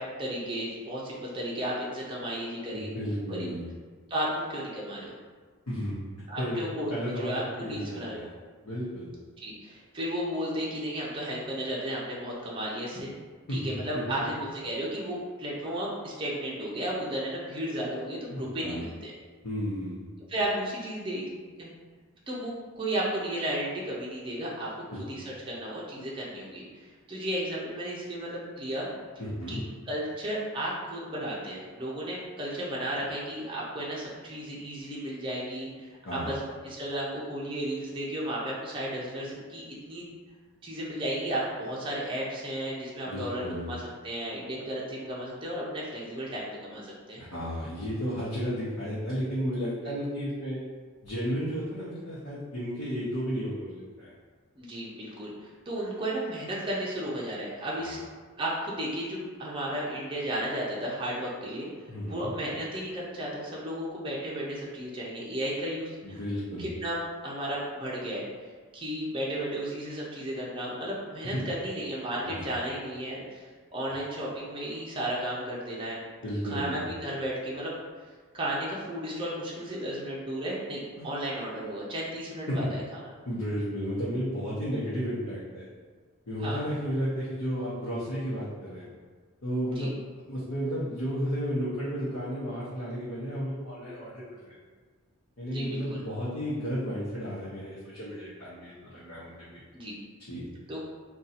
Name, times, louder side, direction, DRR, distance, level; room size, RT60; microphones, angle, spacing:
voice 1, 0.0-2.9 3.3-3.5 4.1-5.1 6.3-6.9 7.2-8.3 9.4-13.1 13.5-19.1 20.3-21.3 21.6-21.7 22.3-24.7 25.1-28.9 29.5-29.6 29.9-40.0 40.6-47.2 54.6-58.0 58.4-61.7 62.1-66.2 66.6-67.0 67.2-68.3 68.7-73.4 73.7-76.0 76.4-77.7 78.3-82.8 86.4-86.6 89.8-89.9 95.5-96.0 99.7-100.0 100.7-100.8, right 1 dB, 25° right, -5 dB, 0.5 m, -34 dB
voice 2, 2.7-3.7 5.7-6.0 6.4-6.6 6.9-8.3 8.6-9.1 13.5-13.8 18.3-18.8 19.4-20.1 24.9-25.1 29.2-29.6 36.0-36.3 43.1-43.7 47.2-50.6 51.0-54.1 57.8-58.0 61.9-62.3 66.0-66.7 72.3-72.4 76.2-76.8 81.0-81.1 82.5-82.7 83.3-85.7 86.3-88.9 89.4-94.6 95.4-99.6 100.3-100.5, equal, 80° left, -9 dB, 0.8 m, -33 dB
2.6 x 2.3 x 4.0 m, 1.5 s
head